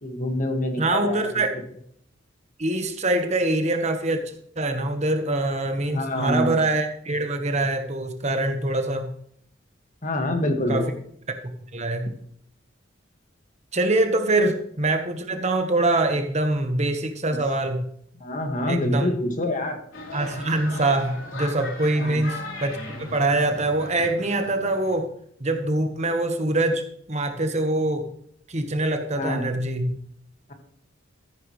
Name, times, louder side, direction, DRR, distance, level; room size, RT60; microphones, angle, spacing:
voice 1, 0.0-1.2 1.5-1.6 5.8-6.6 10.0-10.8 14.4-14.5 17.2-17.4 18.2-19.8 22.0-22.2 29.1-29.5, left 1 dB, 40° left, 4 dB, 1.9 m, -26 dB
voice 2, 0.8-1.5 2.6-9.1 10.7-10.9 11.7-12.1 13.7-17.9 18.7-19.1 20.1-25.1 25.4-28.1 28.5-30.0, right 2 dB, 35° right, 5 dB, 1.3 m, -24 dB
sound 1, 19.9-25.0, left 2 dB, 75° left, 3.6 m, -38 dB
14.0 x 10.5 x 3.2 m, 0.66 s
head